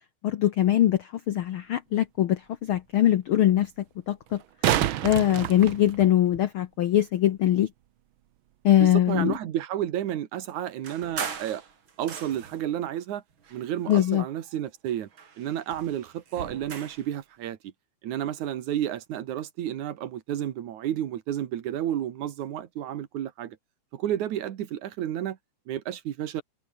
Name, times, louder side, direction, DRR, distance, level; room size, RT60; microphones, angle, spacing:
voice 1, 0.2-3.7 4.1-4.4 5.0-7.7 8.6-9.3 13.9-14.2, left 12 dB, 80° left, 1.1 m, -22 dB
sound 1, 1.4-1.5 4.3-6.4 9.3-9.4, right 12 dB, 90° right, 1.1 m, -28 dB
voice 2, 8.8-11.6 12.0-13.2 13.5-15.1 15.4-17.7 18.0-23.6 23.9-25.4 25.7-26.4, right 11 dB, 75° right, 2.8 m, -31 dB
sound 2, 10.8-12.7 13.4-14.6 14.9-17.1, right 6 dB, 40° right, 2.8 m, -39 dB
omnidirectional pair, 3.6 m